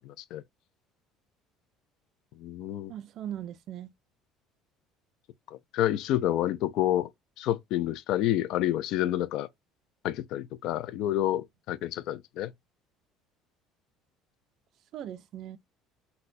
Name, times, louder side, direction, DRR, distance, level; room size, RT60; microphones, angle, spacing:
voice 1, 0.1-0.4 2.4-2.9 5.5-7.1 7.4-9.5 10.0-12.5, left 13 dB, 55° left, 0.4 m, -29 dB
voice 2, 2.9-3.9 14.9-15.6, right 11 dB, 40° right, 0.3 m, -39 dB
4.1 x 2.1 x 2.5 m
cardioid pair, 175°, 0 cm